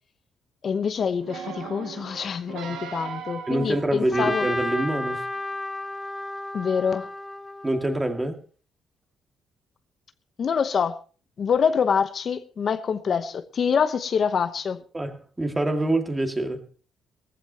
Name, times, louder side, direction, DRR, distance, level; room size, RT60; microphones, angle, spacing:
voice 1, 0.6-4.5 6.5-7.1 10.4-11.0 11.4-14.8, left 6 dB, 50° left, 0.9 m, -25 dB
sound 1, 1.2-4.7 5.4-5.5, right 7 dB, 85° right, 1.6 m, -38 dB
voice 2, 3.5-5.2 7.6-8.4 14.9-16.6, right 1 dB, 15° right, 2.1 m, -25 dB
Trumpet, 4.1-8.3, left 2 dB, 15° left, 2.7 m, -32 dB
19.0 x 15.0 x 2.9 m
cardioid pair, 90°, 0 cm